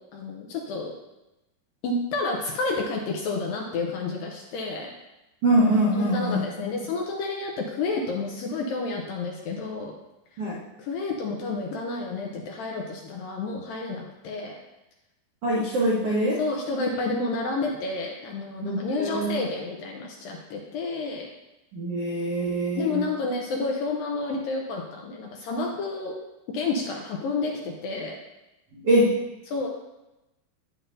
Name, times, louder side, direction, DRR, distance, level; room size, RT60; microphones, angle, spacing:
voice 1, 0.1-0.9 1.8-4.9 5.9-9.9 10.8-14.6 16.4-21.3 22.8-26.2 26.5-28.2 29.5-29.7, left 3 dB, 75° left, 0 dB, 2.2 m, -30 dB
voice 2, 5.4-6.4 10.4-10.6 15.4-16.4 18.6-19.4 21.7-23.0 28.7-29.1, right 1 dB, 80° right, -6 dB, 1.3 m, -23 dB
9.1 x 8.1 x 2.7 m, 0.98 s
omnidirectional pair, 4.7 m